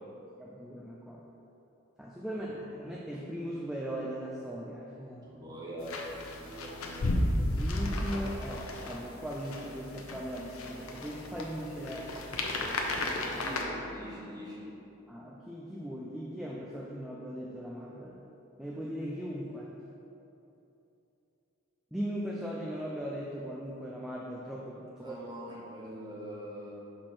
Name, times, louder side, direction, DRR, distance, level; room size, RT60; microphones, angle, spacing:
voice 1, 0.4-1.2 2.0-5.2 7.6-12.0 13.0-13.5 15.1-18.2 18.6-19.7 21.9-25.1, equal, ahead, -4 dB, 0.3 m, -39 dB
voice 2, 2.3-2.7 5.2-7.1 13.4-14.7 25.0-26.7, equal, 20° right, -6 dB, 1.0 m, -43 dB
sound 1, 5.8-13.6, left 1 dB, 85° left, 0.7 m, -34 dB
4.7 x 4.3 x 5.8 m, 2.9 s
head